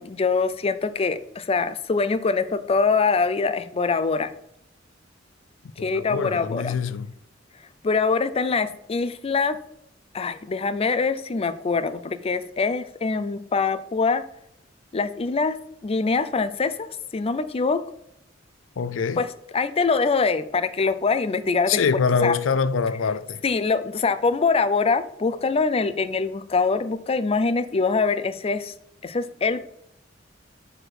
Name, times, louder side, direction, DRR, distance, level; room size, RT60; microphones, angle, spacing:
voice 1, 0.0-4.3 5.8-6.8 7.8-9.6 10.1-14.2 14.9-17.8 19.2-19.3 19.5-21.8 22.2-22.4 23.4-28.7 29.0-29.6, left 4 dB, 30° left, 0.4 m, -24 dB
voice 2, 5.8-7.1 18.8-19.2 21.7-23.4, left 5 dB, 85° left, 0.4 m, -24 dB
5.9 x 4.9 x 4.8 m
head